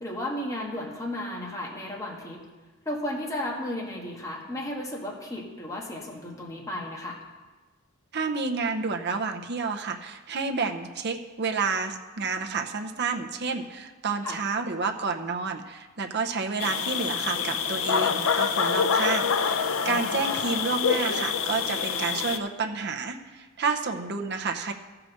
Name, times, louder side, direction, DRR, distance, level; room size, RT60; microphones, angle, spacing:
voice 1, 0.0-2.4 2.8-7.2 14.2-14.4 19.8-20.4, left 1 dB, 15° left, -2 dB, 1.5 m, -34 dB
voice 2, 8.1-24.7, right 4 dB, 55° right, 3 dB, 0.8 m, -30 dB
sound 1, 16.6-22.4, left 6 dB, 70° left, 0.6 m, -26 dB
14.0 x 4.9 x 6.4 m, 1.2 s
head